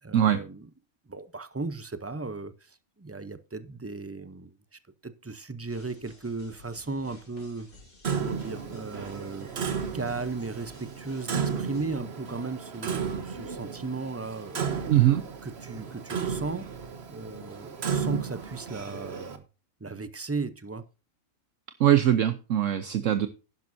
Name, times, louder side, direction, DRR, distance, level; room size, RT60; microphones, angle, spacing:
voice 1, 0.0-0.7 1.1-7.7 8.1-9.7 9.9-16.7 17.1-19.4 19.8-20.8, right 3 dB, 20° right, 0.4 m, -36 dB
sound 1, 5.7-11.8, left 2 dB, 70° left, 3.9 m, -54 dB
Clock, 8.0-19.4, right 6 dB, 50° right, 1.3 m, -34 dB
voice 2, 14.9-15.2 21.8-23.3, right 11 dB, 65° right, 1.1 m, -22 dB
11.5 x 10.5 x 2.6 m
omnidirectional pair, 1.5 m